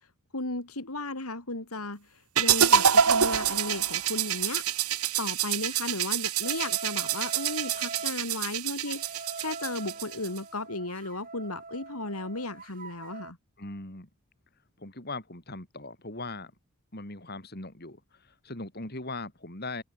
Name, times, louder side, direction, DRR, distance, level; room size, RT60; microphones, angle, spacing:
voice 1, 0.3-4.6 5.2-13.4, left 2 dB, 80° left, 3.9 m, -35 dB
sound 1, 2.4-10.4, right 8 dB, 85° right, 1.7 m, -26 dB
sound 2, 6.4-8.2 8.9-13.3, right 3 dB, 40° right, 5.4 m, -43 dB
voice 2, 13.6-14.1 14.8-16.5 16.9-19.8, left 2 dB, 45° left, 3.5 m, -39 dB
head